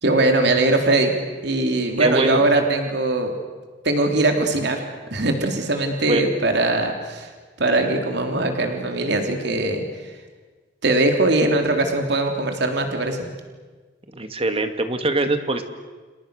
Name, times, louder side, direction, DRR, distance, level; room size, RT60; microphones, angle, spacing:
voice 1, 0.0-1.1 1.4-3.3 3.8-4.8 5.1-7.3 7.6-9.8 10.8-13.2, right 2 dB, 65° right, 4 dB, 3.5 m, -21 dB
voice 2, 2.0-2.4 6.1-6.3 14.1-15.6, right 2 dB, 35° right, 8 dB, 2.2 m, -23 dB
30.0 x 28.5 x 6.6 m, 1.4 s
head